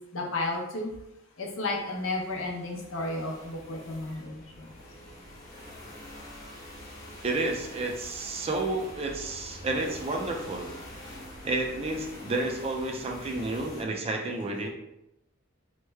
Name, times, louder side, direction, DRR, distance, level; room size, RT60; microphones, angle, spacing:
voice 1, 0.1-0.9 1.4-4.8 11.0-11.1, left 2 dB, 85° left, 0 dB, 0.7 m, -33 dB
sound 1, 1.9-13.8, left 1 dB, 50° left, 1.1 m, -45 dB
voice 2, 7.2-10.7 11.4-14.7, right 2 dB, 30° right, 2 dB, 0.4 m, -31 dB
3.1 x 2.1 x 3.3 m, 0.89 s
head